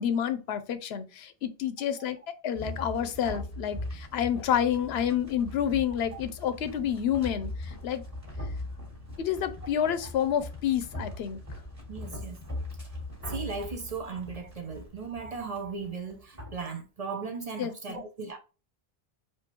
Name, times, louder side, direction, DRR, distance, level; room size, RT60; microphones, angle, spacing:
voice 1, 0.0-2.2 2.4-8.0 9.2-11.4 17.6-18.0, left 9 dB, 85° left, 0.8 m, -29 dB
sound 1, 2.5-16.6, left 1 dB, 15° right, 1.8 m, -40 dB
voice 2, 11.9-12.4 13.3-18.4, right 5 dB, 45° right, 0.6 m, -37 dB
4.4 x 2.7 x 3.0 m
omnidirectional pair, 1.0 m